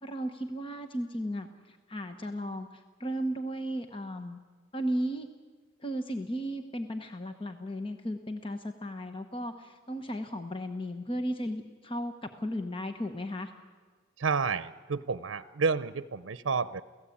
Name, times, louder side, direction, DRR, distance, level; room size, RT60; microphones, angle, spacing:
voice 1, 0.0-4.4 4.7-5.3 5.8-13.5, equal, 30° left, 7 dB, 1.1 m, -35 dB
voice 2, 14.2-16.8, right 5 dB, 90° right, 14 dB, 0.6 m, -30 dB
29.0 x 16.5 x 8.6 m, 1.5 s
head